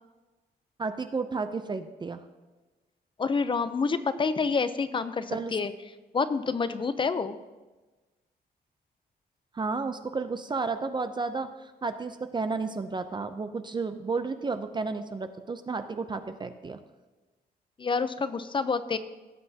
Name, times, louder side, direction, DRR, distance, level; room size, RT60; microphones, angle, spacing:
voice 1, 0.8-2.2 5.3-5.6 9.5-16.8, right 4 dB, 25° right, 9 dB, 0.5 m, -32 dB
voice 2, 3.2-5.7 6.1-7.4 17.8-19.0, left 4 dB, 30° left, 12 dB, 0.6 m, -28 dB
17.0 x 7.8 x 2.8 m, 1.2 s
cardioid pair, 115°, 17 cm